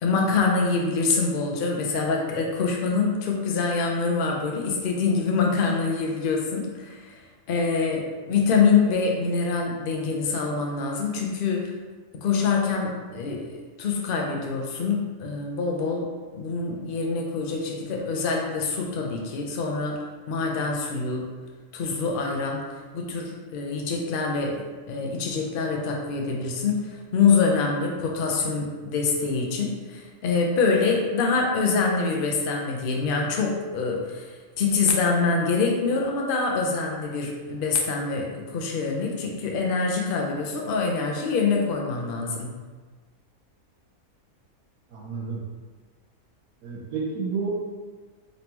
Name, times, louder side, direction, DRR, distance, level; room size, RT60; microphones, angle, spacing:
voice 1, 0.0-7.1 7.5-11.7 12.2-16.1 16.3-20.0 20.3-21.3 21.7-22.6 22.9-42.5, left 4 dB, 50° left, 0 dB, 0.7 m, -25 dB
voice 2, 44.9-45.4 46.6-47.5, right 5 dB, 80° right, -4 dB, 1.2 m, -30 dB
3.8 x 3.6 x 2.9 m, 1.4 s
omnidirectional pair, 1.5 m